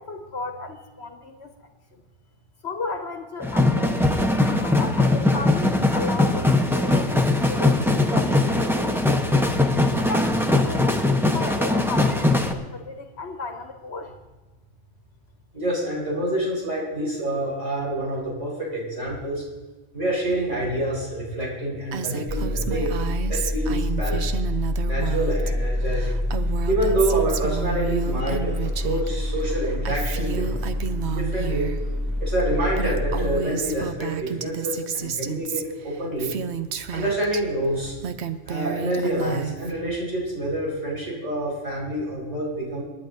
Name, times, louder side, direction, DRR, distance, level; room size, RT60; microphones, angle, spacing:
voice 1, 0.0-1.7 2.6-9.2 9.9-14.1, left 3 dB, 65° left, 5 dB, 1.4 m, -35 dB
sound 1, 3.4-12.5, left 2 dB, ahead, 0.8 m, -21 dB
voice 2, 15.5-19.4 19.9-23.0 23.3-24.4 24.8-26.2 26.7-30.5 31.1-31.7 32.2-36.3 36.9-37.9 38.5-42.8, right 1 dB, 85° right, -4 dB, 5.2 m, -27 dB
Female speech woman speaking, 21.9-25.5 25.8-29.1 29.4-31.8 32.4-32.5 32.7-37.4 37.8-39.8, right 7 dB, 70° right, 1.0 m, -31 dB
sound 2, 22.3-33.4, left 1 dB, 20° right, 2.6 m, -27 dB
27.0 x 11.0 x 2.7 m, 1.2 s
omnidirectional pair, 1.2 m